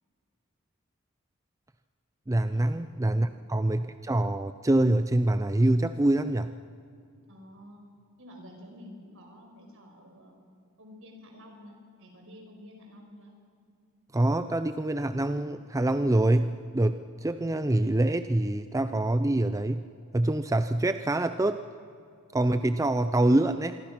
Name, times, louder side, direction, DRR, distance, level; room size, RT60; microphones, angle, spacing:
voice 1, 2.3-6.5 14.1-19.8 20.1-21.6 22.3-23.9, right 1 dB, 15° right, 10 dB, 0.5 m, -25 dB
voice 2, 7.3-7.9 8.2-10.4 10.8-13.3, left 1 dB, 65° right, 2 dB, 5.3 m, -50 dB
26.5 x 22.5 x 6.0 m, 2.4 s
head